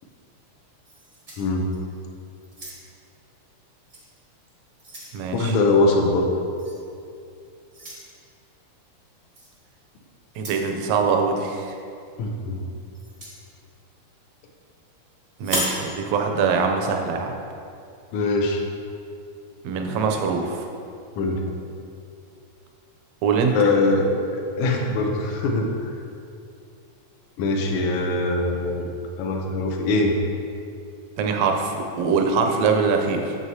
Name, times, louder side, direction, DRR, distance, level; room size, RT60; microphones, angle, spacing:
sound 1, 0.8-2.0 2.4-3.1 3.9-4.1 4.5-5.2 6.6-6.8 7.7-8.0 9.3-9.5 10.3-10.7 12.9-13.4 15.4-15.8, equal, 40° right, 0.6 m, -33 dB
voice 1, 1.4-1.7 5.3-6.3 12.2-12.6 18.1-18.6 21.2-21.4 23.5-25.9 27.4-28.9 29.2-30.1, left 2 dB, 75° left, 1 dB, 1.4 m, -22 dB
voice 2, 5.1-5.6 10.4-11.7 15.4-17.4 19.6-20.7 23.2-23.6 31.2-33.4, right 5 dB, 75° right, 3 dB, 1.6 m, -23 dB
8.0 x 7.4 x 2.8 m, 2.5 s
omnidirectional pair, 3.4 m